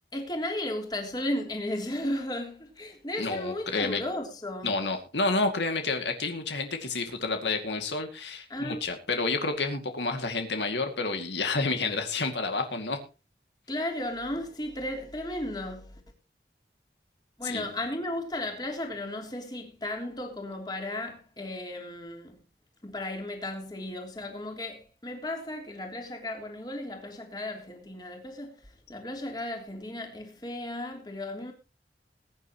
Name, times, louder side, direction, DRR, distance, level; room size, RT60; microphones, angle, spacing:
voice 1, 0.1-4.8 8.5-8.9 13.7-16.0 17.4-22.4 22.8-31.5, left 1 dB, 25° left, 3.2 m, -35 dB
voice 2, 3.2-4.0 4.6-13.0 17.4-17.6, left 3 dB, 85° left, 2.3 m, -29 dB
21.5 x 9.6 x 3.0 m
head